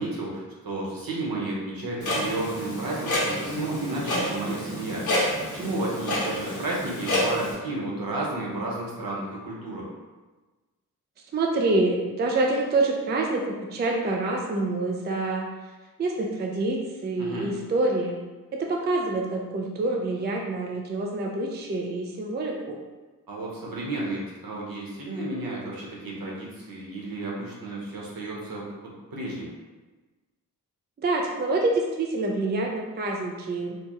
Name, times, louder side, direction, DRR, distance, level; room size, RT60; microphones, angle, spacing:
voice 1, 0.0-5.0 5.5-9.9 17.2-17.5 23.3-29.6, right 2 dB, 80° right, -4 dB, 1.0 m, -32 dB
Clock, 2.0-7.5, left 1 dB, 60° left, 0.9 m, -29 dB
voice 2, 11.3-15.5 16.0-18.2 18.5-22.8 31.0-33.8, right 2 dB, 30° right, 0 dB, 0.3 m, -26 dB
4.4 x 2.2 x 3.0 m, 1.2 s
wide cardioid pair, 160°, 35 cm